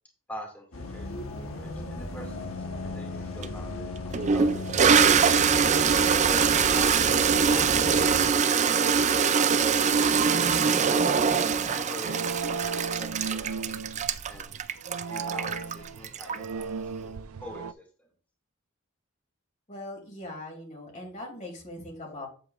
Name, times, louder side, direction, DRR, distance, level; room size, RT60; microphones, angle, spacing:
voice 1, 0.3-3.9 4.3-5.0 6.1-10.8 11.4-12.3 12.7-14.6 15.1-18.1, equal, 10° left, 0 dB, 2.2 m, -45 dB
sound 1, 0.7-8.3, left 2 dB, 70° left, 1.3 m, -36 dB
Toilet flush, 3.4-3.5 4.1-16.6, right 6 dB, 35° right, 0.4 m, -23 dB
sound 2, 12.0-17.7, right 4 dB, 90° right, 0.5 m, -36 dB
voice 2, 19.7-22.3, left 1 dB, 35° left, 0 dB, 3.0 m, -40 dB
8.7 x 7.9 x 2.5 m, 0.40 s
head